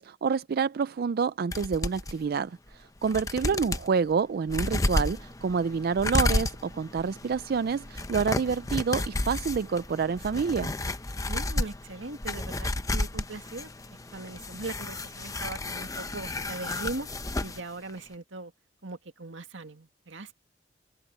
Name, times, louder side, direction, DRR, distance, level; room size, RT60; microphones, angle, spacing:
voice 1, 0.0-10.7, right 5 dB, 55° right, 0.4 m, -28 dB
sound 1, 1.5-2.1 2.7-2.8 3.0-3.9 4.5-17.6 17.9-18.0, left 2 dB, 20° left, 0.9 m, -32 dB
voice 2, 11.3-13.7 14.1-17.1 17.4-18.5 18.8-20.3, right 2 dB, 80° right, 2.1 m, -39 dB
open air
head